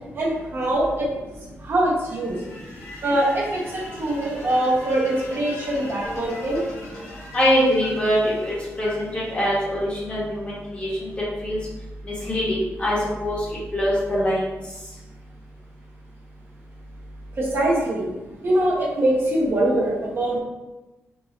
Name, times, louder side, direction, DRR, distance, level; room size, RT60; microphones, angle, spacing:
voice 1, 0.1-1.1 1.6-2.4 3.0-6.6 17.4-18.1 18.4-20.4, right 1 dB, 45° right, -4 dB, 0.9 m, -23 dB
sound 1, 2.0-10.1, left 2 dB, 80° left, 1.3 m, -40 dB
voice 2, 7.3-11.1 11.4-11.6 12.0-13.5 13.7-14.4, equal, 25° left, -7 dB, 1.2 m, -23 dB
4.6 x 2.5 x 3.1 m, 1.1 s
wide cardioid pair, 155°, 5 cm